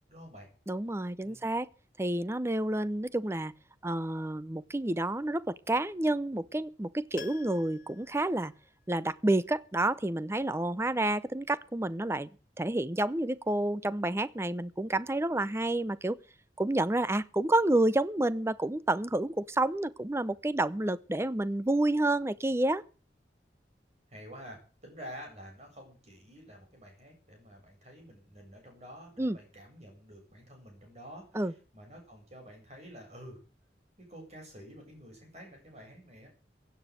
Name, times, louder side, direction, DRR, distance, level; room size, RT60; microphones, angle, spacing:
voice 1, 0.1-0.5 1.2-1.4 24.1-33.4 34.0-36.3, equal, 40° right, 7.7 m, -49 dB
voice 2, 0.7-1.7 2.0-3.5 3.8-8.5 8.9-12.3 12.6-16.2 16.6-22.8 29.2-29.4 31.3-31.5, right 1 dB, 15° right, 0.6 m, -29 dB
Piano, 7.1-9.2 9.5-9.6, left 5 dB, 50° left, 1.0 m, -50 dB
16.0 x 9.1 x 6.4 m
head